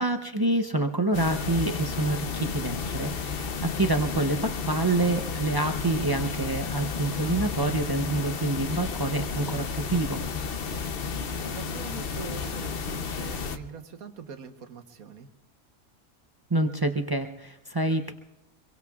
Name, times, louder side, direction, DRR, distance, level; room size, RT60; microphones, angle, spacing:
voice 1, 0.0-10.2 16.5-18.1, right 2 dB, 35° right, 5 dB, 0.3 m, -27 dB
sound 1, 1.1-13.6, left 5 dB, 50° left, 0.9 m, -32 dB
voice 2, 11.3-15.3, right 6 dB, 75° right, 7 dB, 1.5 m, -43 dB
25.0 x 22.5 x 2.4 m, 0.92 s
omnidirectional pair, 1.5 m